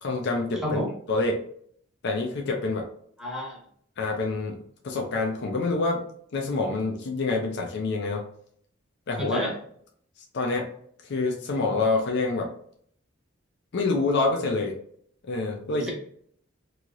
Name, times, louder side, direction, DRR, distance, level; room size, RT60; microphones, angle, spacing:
voice 1, 0.0-0.8 1.1-1.4 2.0-2.9 4.0-4.6 4.8-6.0 6.3-8.2 9.1-9.6 10.3-10.7 11.0-12.5 13.7-14.8 15.3-15.9, left 3 dB, 55° left, 0 dB, 0.5 m, -26 dB
voice 2, 3.2-3.6 9.2-9.5 15.7-15.9, equal, 5° right, -3 dB, 0.9 m, -30 dB
3.1 x 2.8 x 2.4 m, 0.63 s
head